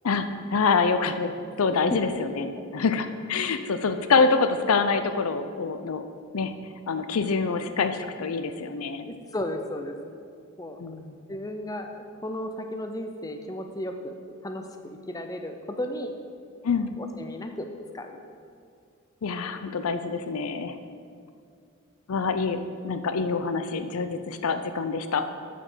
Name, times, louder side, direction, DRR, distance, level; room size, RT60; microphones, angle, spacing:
voice 1, 0.0-6.0 6.3-6.5 6.9-9.1 10.8-11.1 16.6-17.0 19.2-20.8 22.1-25.2, left 4 dB, 85° left, 9 dB, 0.5 m, -26 dB
voice 2, 9.1-9.9 10.6-10.8 11.3-11.9 12.2-14.1 14.4-16.1 17.0-18.2, left 1 dB, 15° left, 5 dB, 0.5 m, -34 dB
8.7 x 5.1 x 6.2 m, 2.3 s
head